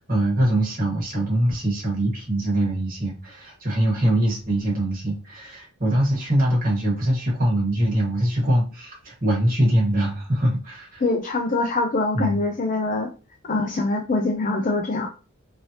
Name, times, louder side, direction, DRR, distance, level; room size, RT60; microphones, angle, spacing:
voice 1, 0.0-11.0 12.1-12.4, right 1 dB, 40° right, -4 dB, 1.4 m, -23 dB
voice 2, 11.0-13.1 13.4-15.1, left 2 dB, 35° left, 3 dB, 0.4 m, -24 dB
3.2 x 2.8 x 2.7 m, 0.33 s
head